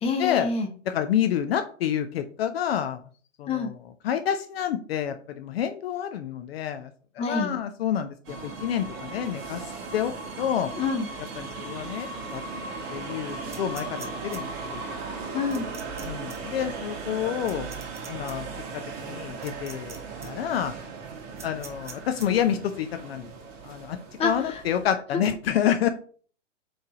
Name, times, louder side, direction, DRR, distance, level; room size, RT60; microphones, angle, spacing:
voice 1, 0.0-0.7 3.5-3.7 7.2-7.5 10.8-11.1 15.3-15.7 24.2-24.6, left 4 dB, 15° left, 4 dB, 1.0 m, -27 dB
voice 2, 0.9-3.0 3.4-3.8 4.0-6.9 7.2-9.6 9.9-10.7 11.4-12.4 12.9-14.8 16.0-17.7 18.1-18.5 18.7-20.7 21.4-23.3 23.6-24.0 24.2-25.9, left 9 dB, 50° left, 8 dB, 0.7 m, -28 dB
sound 1, 8.2-24.9, right 4 dB, 30° right, 1.6 m, -37 dB
sound 2, 13.5-14.4 15.5-16.0 16.3-16.4 17.4-18.3 19.4-20.0 20.2-20.3 21.4-22.3, right 5 dB, 10° right, 0.4 m, -43 dB
4.6 x 4.6 x 5.0 m, 0.44 s
hypercardioid pair, 130°, 38 cm